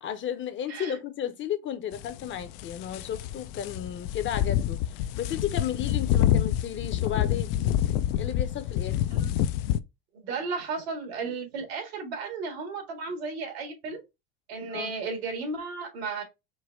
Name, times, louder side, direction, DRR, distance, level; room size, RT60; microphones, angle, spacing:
voice 1, 0.0-4.8 5.2-7.5 8.1-9.0 14.7-15.0, left 9 dB, 40° left, 0.8 m, -33 dB
sound 1, 1.9-9.8, left 11 dB, 70° left, 0.5 m, -27 dB
voice 2, 10.1-14.0 14.5-16.2, right 4 dB, 90° right, 2.0 m, -34 dB
4.7 x 2.2 x 4.3 m
supercardioid pair, 105°, 31 cm